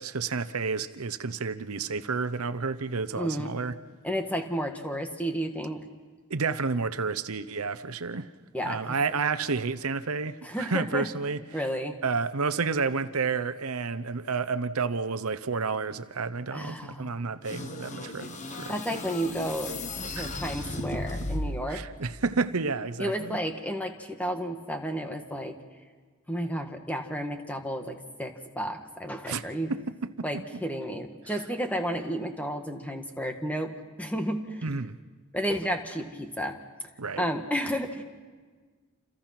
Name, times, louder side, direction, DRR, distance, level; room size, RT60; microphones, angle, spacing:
voice 1, 0.0-3.7 6.3-8.3 8.6-11.4 12.0-18.7 20.2-20.4 20.8-21.0 21.7-23.4 29.3-29.4 29.7-30.6 34.6-35.0 37.0-37.2, right 4 dB, 85° right, 0.9 m, -30 dB
voice 2, 3.2-3.5 4.0-5.8 8.5-9.0 10.4-11.1 11.5-12.0 16.5-17.2 18.7-19.7 20.1-21.8 23.0-25.6 26.3-29.7 30.2-33.7 34.0-34.6 35.3-36.6 37.2-38.0, equal, 5° left, 1.7 m, -32 dB
sound 1, 17.4-21.8, left 2 dB, 35° left, 1.5 m, -35 dB
29.0 x 27.5 x 6.0 m
head